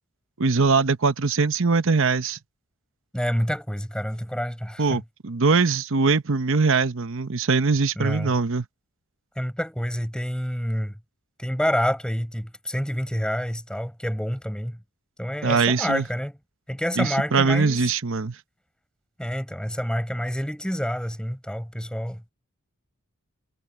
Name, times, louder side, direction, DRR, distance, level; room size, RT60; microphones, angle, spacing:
voice 1, 0.4-2.4 4.8-8.6 15.4-16.1 17.0-18.4, right 4 dB, 60° right, 0.9 m, -22 dB
voice 2, 3.1-5.0 8.0-8.3 9.4-11.0 11.4-14.8 15.2-16.4 16.7-17.8 19.2-22.2, equal, 5° left, 6.1 m, -28 dB
head